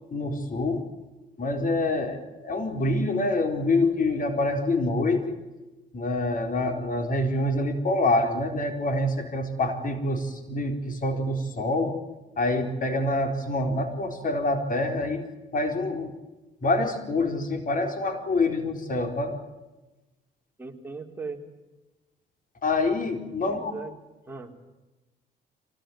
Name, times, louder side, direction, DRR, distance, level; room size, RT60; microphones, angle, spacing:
voice 1, 0.1-0.9 1.4-5.4 5.9-12.0 12.4-15.3 15.5-16.1 16.6-19.4 22.6-23.7, left 2 dB, 45° left, 6 dB, 4.3 m, -26 dB
voice 2, 20.6-21.4 23.4-23.9 24.3-24.5, right 4 dB, 10° right, 2 dB, 4.4 m, -38 dB
24.5 x 18.0 x 9.5 m, 1.1 s
cardioid pair, 80°, 19 cm